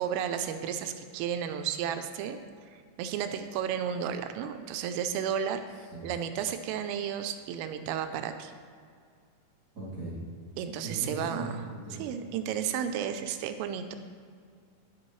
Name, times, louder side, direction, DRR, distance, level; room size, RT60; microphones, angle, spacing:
voice 1, 0.0-2.4 2.7-5.6 6.0-8.5 10.6-11.7 12.0-14.0, right 8 dB, 85° right, 8 dB, 3.1 m, -33 dB
voice 2, 9.7-10.2 10.8-12.1, right 2 dB, 40° right, -10 dB, 1.8 m, -38 dB
11.5 x 10.5 x 3.1 m, 2.2 s
omnidirectional pair, 5.9 m